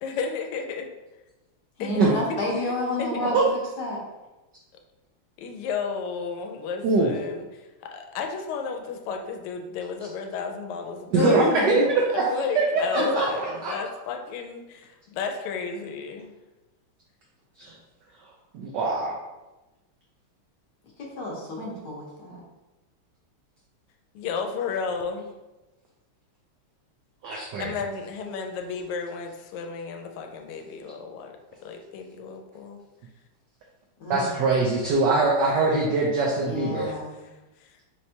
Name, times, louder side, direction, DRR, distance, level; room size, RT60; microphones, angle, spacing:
voice 1, 0.0-0.8 1.8-1.9 3.0-3.3 5.4-16.3 24.1-25.3 27.6-31.3 31.6-32.8 36.8-37.0 37.6-37.8, left 5 dB, 85° left, 4 dB, 1.5 m, -33 dB
voice 2, 1.8-3.4 3.8-4.0 11.1-11.9 12.9-13.6 21.0-22.4 34.0-34.3 36.4-37.1, left 2 dB, 60° left, -4 dB, 1.2 m, -29 dB
voice 3, 11.1-13.7 17.6-17.7 18.5-19.2 27.2-27.7 34.1-36.9, right 3 dB, 75° right, -2 dB, 1.0 m, -23 dB
4.3 x 3.2 x 2.7 m, 1.1 s
omnidirectional pair, 2.4 m